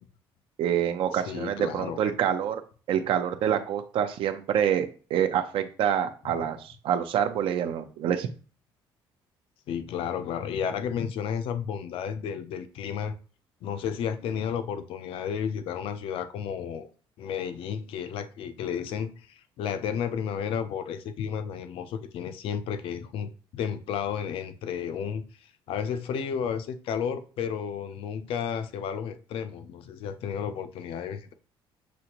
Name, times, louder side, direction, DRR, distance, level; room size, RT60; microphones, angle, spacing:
voice 1, 0.6-2.6 2.9-8.3, right 9 dB, 70° right, 0.6 m, -26 dB
voice 2, 1.1-2.0 9.7-13.2 13.6-16.9 17.2-31.3, left 7 dB, 75° left, 0.5 m, -32 dB
6.2 x 2.6 x 2.9 m
cardioid pair, 135°, 10 cm